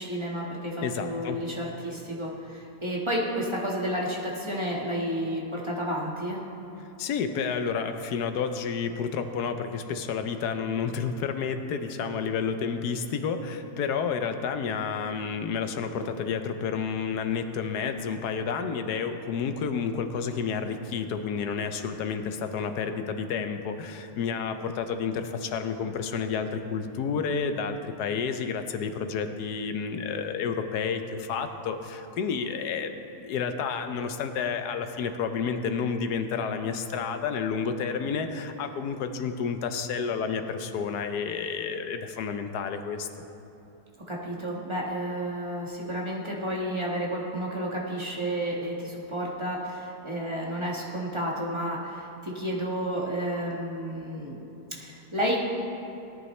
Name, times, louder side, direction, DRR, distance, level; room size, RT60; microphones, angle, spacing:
voice 1, 0.0-6.4 44.1-54.4 54.8-55.5, equal, 20° right, -4 dB, 1.4 m, -31 dB
voice 2, 0.8-1.4 7.0-43.1, left 6 dB, 75° left, 8 dB, 1.3 m, -30 dB
18.0 x 10.5 x 3.2 m, 2.9 s
omnidirectional pair, 1.8 m